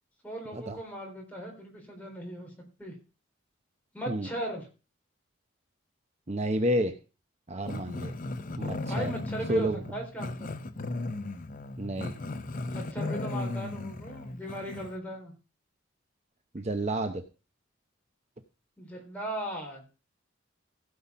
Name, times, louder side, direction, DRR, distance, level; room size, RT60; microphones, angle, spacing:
voice 1, 0.2-2.5 2.8-2.9 3.9-4.7 8.9-10.5 12.7-15.3 18.8-19.8, right 1 dB, 10° left, -1 dB, 3.8 m, -38 dB
voice 2, 6.3-6.9 7.5-8.1 8.6-9.1 9.5-9.8 11.8-12.1 16.5-17.2, right 1 dB, 35° right, 7 dB, 0.8 m, -30 dB
Growling, 7.7-15.0, left 2 dB, 45° left, 0.7 m, -36 dB
16.0 x 5.7 x 5.4 m, 0.33 s
head